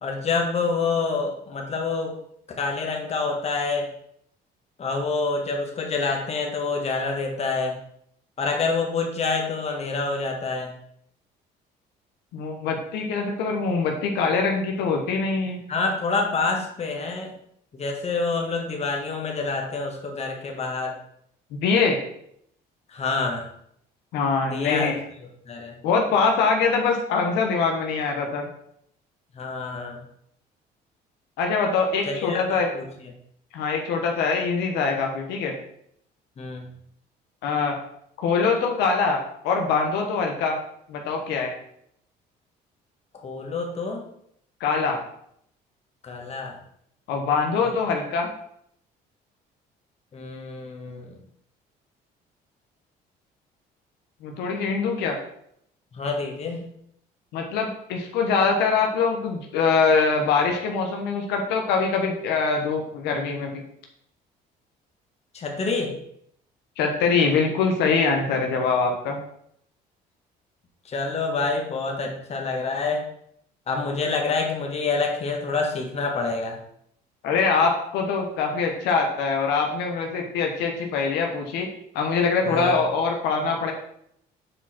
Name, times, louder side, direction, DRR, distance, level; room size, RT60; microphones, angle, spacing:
voice 1, 0.0-2.1 2.6-3.9 4.8-7.7 8.4-10.7 15.7-17.4 17.7-21.0 22.9-23.4 24.5-24.9 25.5-25.7 29.3-30.0 32.1-33.1 36.4-36.7 43.2-44.0 46.0-46.6 47.6-47.7 50.1-51.2 55.9-56.7 65.3-66.0 70.8-73.1 73.7-76.6 82.5-82.7, left 4 dB, 40° left, 2 dB, 1.6 m, -27 dB
voice 2, 12.3-15.6 21.6-22.0 24.1-25.0 25.8-28.5 31.4-32.7 33.5-35.5 37.4-37.8 38.2-40.6 40.9-41.5 44.6-45.0 47.1-48.3 54.2-55.2 57.3-63.6 66.8-69.2 77.2-81.7 81.9-83.7, left 4 dB, 90° left, 2 dB, 1.2 m, -23 dB
6.9 x 4.8 x 4.4 m, 0.71 s
cardioid pair, 110°, 17 cm